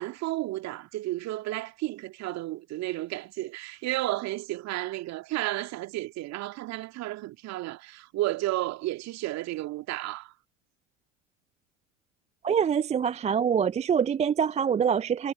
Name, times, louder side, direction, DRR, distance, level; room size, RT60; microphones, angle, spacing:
voice 1, 0.0-10.3, right 17 dB, 45° right, 2.3 m, -32 dB
voice 2, 12.4-15.3, right 7 dB, 20° right, 0.6 m, -25 dB
figure-of-eight pair, 75°, 37 cm